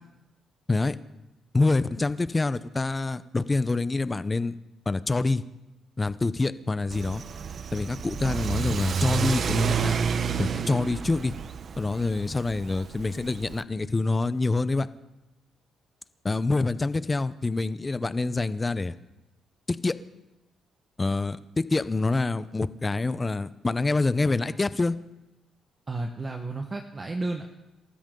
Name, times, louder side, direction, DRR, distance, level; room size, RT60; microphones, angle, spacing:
voice 1, 1.5-4.5 4.9-5.4 6.0-7.2 7.7-10.0 10.4-11.3 11.8-14.9 16.2-18.9 19.7-20.0 21.0-25.0, left 3 dB, 25° left, 14 dB, 0.8 m, -26 dB
Car / Accelerating revving vroom, 6.9-13.6, right 7 dB, 50° right, 0.8 m, -30 dB
voice 2, 25.9-27.4, right 2 dB, 30° right, 3 dB, 1.4 m, -32 dB
28.0 x 13.0 x 3.9 m, 0.99 s
cardioid pair, 90°, 0 cm